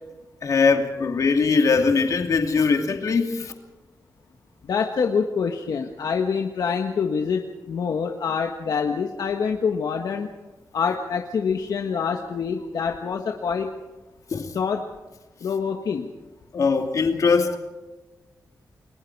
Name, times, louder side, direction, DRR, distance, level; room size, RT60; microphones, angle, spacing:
voice 1, 0.4-3.5 14.3-14.5 16.5-17.6, left 4 dB, 55° left, 4 dB, 2.6 m, -21 dB
voice 2, 4.6-10.3 10.7-13.7 14.5-14.9 15.4-16.1, left 6 dB, 70° left, 3 dB, 1.6 m, -26 dB
30.0 x 21.5 x 4.8 m, 1.2 s
wide cardioid pair, 170°, 7 cm